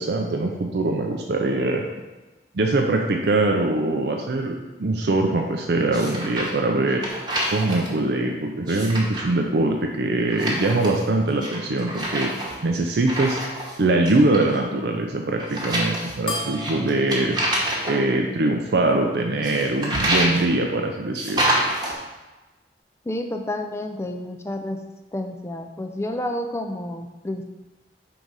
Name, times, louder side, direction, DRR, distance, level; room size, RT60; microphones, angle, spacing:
voice 1, 0.0-1.8 2.5-7.0 7.5-12.3 12.6-13.4 13.8-17.4 17.9-21.4, right 2 dB, 70° right, 2 dB, 0.5 m, -22 dB
sound 1, 5.9-6.6 6.9-7.9 8.5-9.3 10.3-11.1 11.4-13.8 14.1-14.6 15.4-18.0 19.4-20.4 21.1-21.9, right 1 dB, 25° right, 1.1 m, -27 dB
sound 2, 16.3-19.1, left 2 dB, 30° left, 0.8 m, -36 dB
voice 2, 23.1-24.8 25.1-27.4, left 1 dB, 15° left, 4 dB, 0.4 m, -30 dB
4.7 x 3.9 x 5.4 m, 1.1 s
head